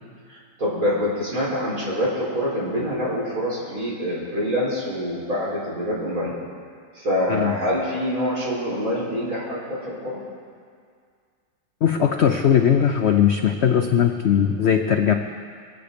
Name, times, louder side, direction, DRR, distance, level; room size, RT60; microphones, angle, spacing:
voice 1, 0.3-6.3 6.9-10.2, equal, 50° right, -7 dB, 4.4 m, -25 dB
voice 2, 11.8-15.1, left 8 dB, 90° left, 5 dB, 0.5 m, -19 dB
23.0 x 8.1 x 5.1 m, 2.1 s
omnidirectional pair, 1.9 m